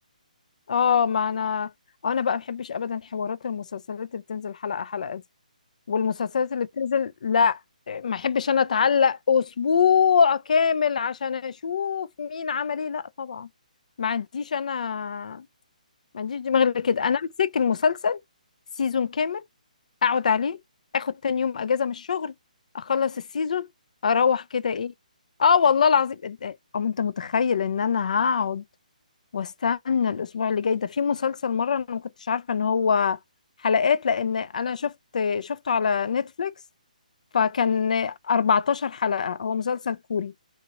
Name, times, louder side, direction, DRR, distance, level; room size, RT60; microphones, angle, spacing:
voice 1, 0.7-1.7 2.0-5.2 5.9-7.6 7.9-13.5 14.0-15.5 16.1-18.2 18.8-19.4 20.0-20.6 20.9-22.3 22.7-23.7 24.0-24.9 25.4-28.6 29.3-33.2 33.6-36.5 37.3-40.3, left 6 dB, 60° left, 0.3 m, -24 dB
2.9 x 2.3 x 2.9 m
figure-of-eight pair, 140°, 4 cm